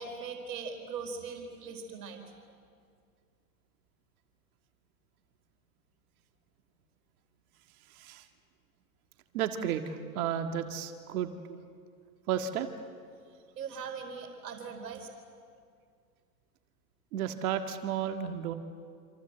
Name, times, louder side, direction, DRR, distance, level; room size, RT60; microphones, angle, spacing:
voice 1, 0.0-2.2 13.5-15.1, right 5 dB, 75° right, 4 dB, 4.4 m, -40 dB
voice 2, 7.9-8.2 9.3-11.3 12.3-12.7 17.1-18.5, right 9 dB, 60° right, 6 dB, 1.9 m, -32 dB
27.0 x 27.0 x 7.9 m, 2.2 s
hypercardioid pair, 130°, 50 cm